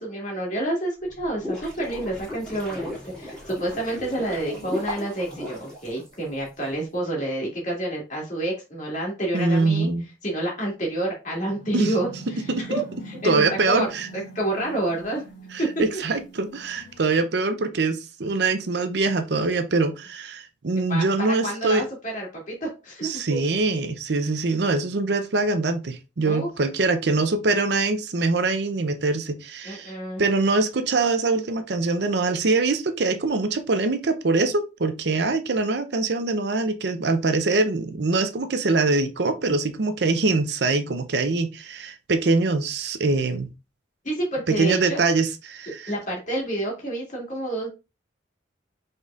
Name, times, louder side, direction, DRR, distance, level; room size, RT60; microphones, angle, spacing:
voice 1, 0.0-9.9 10.2-13.9 14.1-15.3 15.6-15.7 20.7-23.4 26.2-26.5 29.6-30.2 44.0-45.0 45.9-47.7, right 1 dB, 40° left, 2.0 m, -29 dB
sound 1, 1.1-6.5, left 1 dB, 5° left, 2.2 m, -36 dB
voice 2, 9.3-10.0 11.7-11.9 12.5-12.6 13.2-14.1 15.5-21.8 23.0-29.9 30.2-43.5 44.5-45.9, right 3 dB, 60° right, 0.6 m, -23 dB
sound 2, 11.4-17.1, right 2 dB, 85° left, 2.5 m, -43 dB
5.2 x 4.0 x 2.4 m
head